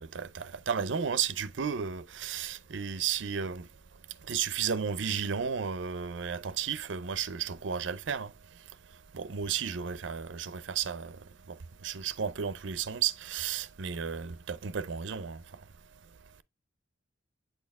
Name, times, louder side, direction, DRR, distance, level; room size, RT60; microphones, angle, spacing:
voice 1, 0.0-3.6 4.3-8.3 9.1-11.2 11.8-15.4, right 7 dB, 65° right, 0.5 m, -33 dB
8.0 x 4.3 x 3.4 m
head